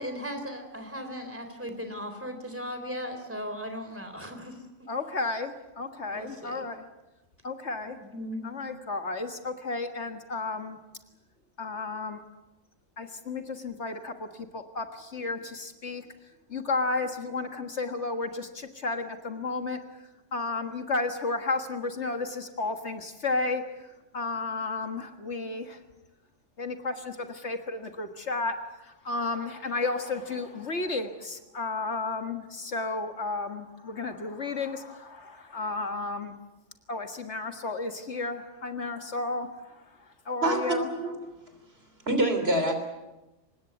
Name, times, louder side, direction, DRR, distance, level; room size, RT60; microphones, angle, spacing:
voice 1, 0.0-4.6 6.1-6.6 7.9-8.5, equal, 10° right, 6 dB, 3.7 m, -37 dB
voice 2, 4.9-6.8 7.4-8.0 8.4-10.8 11.6-12.2 13.0-16.1 16.5-19.8 20.3-25.8 26.6-36.4 36.9-40.9, left 3 dB, 60° left, 6 dB, 1.9 m, -33 dB
voice 3, 40.4-41.2 42.1-42.8, right 1 dB, 50° right, 7 dB, 3.6 m, -26 dB
24.5 x 20.0 x 8.1 m, 1.0 s
omnidirectional pair, 1.3 m